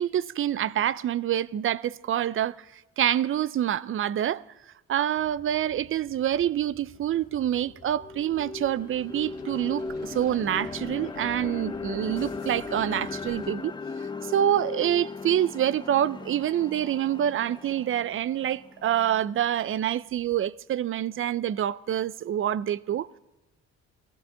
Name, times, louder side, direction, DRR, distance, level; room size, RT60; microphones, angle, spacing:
voice 1, 0.0-4.4 4.9-13.7 14.2-23.2, right 11 dB, 45° right, 0.4 m, -26 dB
sound 1, 5.1-13.5, left 4 dB, 55° left, 1.6 m, -51 dB
sound 2, 7.0-7.1 7.6-19.6, left 4 dB, 15° left, 0.5 m, -38 dB
16.0 x 15.5 x 3.7 m
cardioid pair, 90°, 30 cm